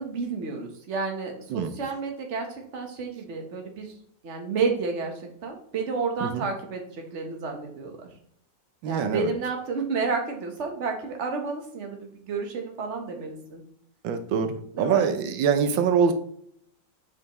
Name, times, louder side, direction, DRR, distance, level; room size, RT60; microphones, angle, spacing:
voice 1, 0.0-3.9 4.2-8.1 8.9-13.6 14.7-15.1, right 4 dB, 40° right, 3 dB, 1.4 m, -31 dB
voice 2, 8.8-9.3 14.0-16.1, right 7 dB, 85° right, 8 dB, 1.4 m, -24 dB
8.0 x 5.2 x 3.1 m, 0.66 s
omnidirectional pair, 2.0 m